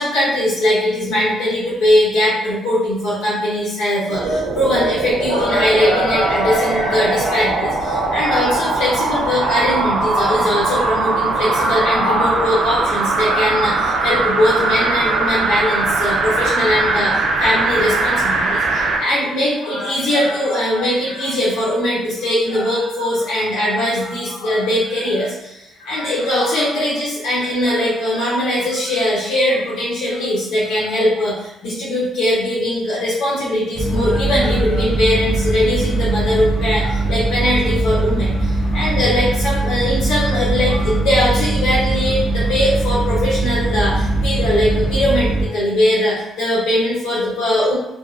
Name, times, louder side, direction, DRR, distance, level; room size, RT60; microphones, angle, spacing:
voice 1, 0.0-47.8, left 1 dB, 85° left, -8 dB, 0.8 m, -20 dB
sound 1, 4.1-19.1 19.5-19.6, right 3 dB, 65° right, 0.4 m, -20 dB
sound 2, 33.7-45.5, right 2 dB, 25° left, 0.5 m, -20 dB
2.6 x 2.3 x 2.4 m, 0.88 s
cardioid pair, 115°, 0 cm